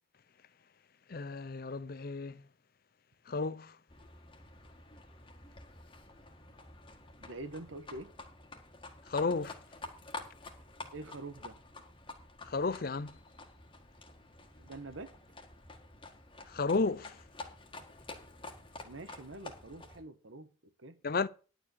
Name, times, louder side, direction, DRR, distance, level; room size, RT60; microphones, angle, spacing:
voice 1, 1.1-2.5 3.3-3.8 9.1-9.6 12.4-13.2 16.5-17.2 21.0-21.3, left 4 dB, 50° left, 0.5 m, -33 dB
Livestock farm animals working animals, 3.9-20.0, left 3 dB, 25° left, 1.6 m, -49 dB
voice 2, 7.2-8.1 10.9-11.6 14.6-15.1 18.8-21.0, right 2 dB, 80° right, 1.3 m, -45 dB
11.0 x 4.9 x 8.2 m
head